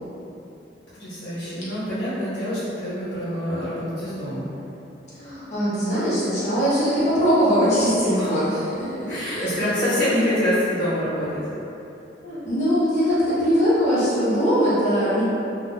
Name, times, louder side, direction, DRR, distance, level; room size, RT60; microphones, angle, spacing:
voice 1, 0.9-4.4 8.2-8.4 9.1-11.4, left 1 dB, 70° left, -12 dB, 0.9 m, -26 dB
voice 2, 5.1-9.0 9.3-9.8 12.2-15.2, equal, 40° left, -11 dB, 1.0 m, -21 dB
2.4 x 2.3 x 3.9 m, 2.9 s
head